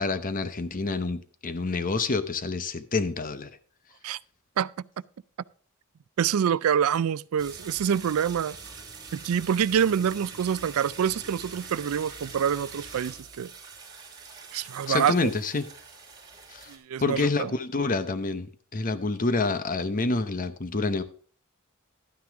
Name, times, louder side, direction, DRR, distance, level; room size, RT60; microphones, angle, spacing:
voice 1, 0.0-3.5 14.9-15.7 16.5-16.7 17.0-21.0, left 3 dB, 40° left, 0.8 m, -28 dB
voice 2, 6.2-8.6 9.1-13.5 14.5-15.1 16.7-17.5, right 8 dB, 80° right, 0.4 m, -26 dB
sound 1, 7.4-16.8, right 4 dB, 20° right, 3.1 m, -44 dB
12.0 x 9.5 x 3.5 m
head